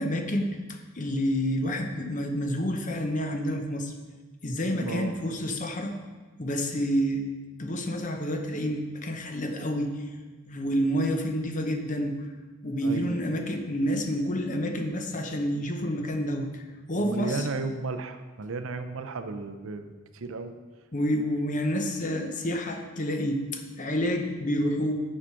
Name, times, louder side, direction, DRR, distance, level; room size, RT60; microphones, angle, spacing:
voice 1, 0.0-3.9 4.4-5.9 6.4-7.2 7.6-10.0 10.5-12.2 12.6-16.6 16.9-17.5 20.9-25.0, equal, 35° left, 4 dB, 0.7 m, -29 dB
voice 2, 4.8-5.2 12.8-13.2 17.0-20.5, right 3 dB, 65° right, 8 dB, 0.6 m, -34 dB
7.6 x 4.9 x 5.6 m, 1.3 s
head